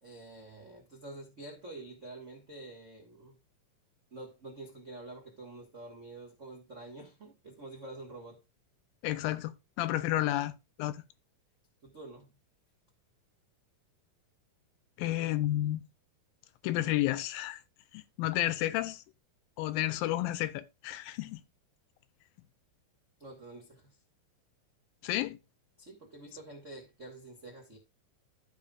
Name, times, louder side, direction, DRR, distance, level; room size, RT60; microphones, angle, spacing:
voice 1, 0.0-3.4 4.1-8.4 9.8-9.9 11.8-12.3 23.2-23.9 25.8-27.8, right 2 dB, 70° right, 0.7 m, -47 dB
voice 2, 9.0-10.5 10.8-11.0 15.0-15.8 16.6-17.6 17.9-19.0 19.6-21.4 25.0-25.4, left 15 dB, 85° left, 2.4 m, -31 dB
14.5 x 5.3 x 2.4 m
omnidirectional pair, 4.2 m